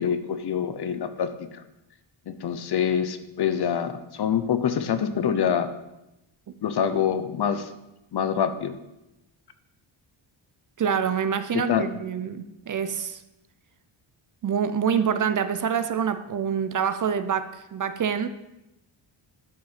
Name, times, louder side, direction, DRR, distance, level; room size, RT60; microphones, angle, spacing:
voice 1, 0.0-1.6 2.3-5.7 6.6-7.7 8.1-8.7 11.5-11.9, left 8 dB, 55° left, 0.9 m, -25 dB
voice 2, 10.8-13.2 14.4-18.3, right 7 dB, 40° right, 0.6 m, -26 dB
12.0 x 5.9 x 5.8 m
wide cardioid pair, 130°, 47 cm